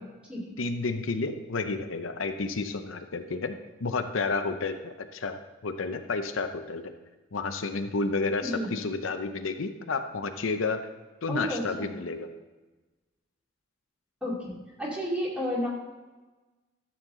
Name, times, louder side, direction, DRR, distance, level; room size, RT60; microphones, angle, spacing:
voice 1, 0.6-6.9 7.3-10.8 11.2-12.3, left 3 dB, 90° left, 7 dB, 0.7 m, -31 dB
voice 2, 11.3-11.9 14.2-14.5 14.8-15.7, equal, 5° right, -5 dB, 2.4 m, -31 dB
12.5 x 7.2 x 3.8 m, 1.2 s
head